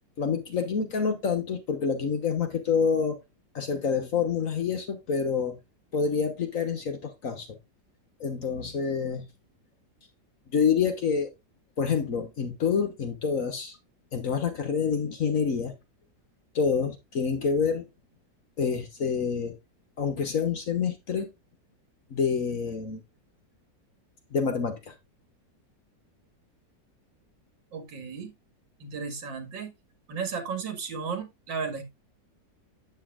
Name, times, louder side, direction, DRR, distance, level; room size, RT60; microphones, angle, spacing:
voice 1, 0.2-3.2 3.5-5.6 5.9-7.6 8.2-9.3 10.5-11.3 11.8-13.8 14.1-15.7 16.5-17.8 18.6-19.5 20.0-21.3 22.1-23.0 24.3-24.9, left 6 dB, 50° left, 1.3 m, -27 dB
voice 2, 27.7-28.3 28.8-29.7 30.1-31.8, right 5 dB, 85° right, 2.7 m, -34 dB
8.8 x 8.1 x 2.4 m
omnidirectional pair, 2.0 m